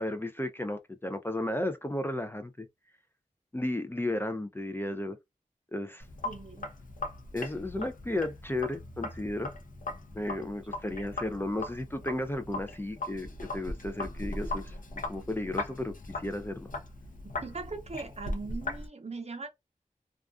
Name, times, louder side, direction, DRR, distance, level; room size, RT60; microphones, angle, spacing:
voice 1, 0.0-2.7 3.5-5.2 5.7-6.1 7.3-9.5 10.1-14.7 15.1-16.7, left 1 dB, 15° left, 0.4 m, -34 dB
Sink (filling or washing), 6.0-18.9, left 2 dB, 70° left, 0.6 m, -39 dB
voice 2, 6.2-6.7 17.2-19.5, right 3 dB, 45° right, 0.7 m, -40 dB
2.4 x 2.3 x 2.3 m
wide cardioid pair, 55°, 15 cm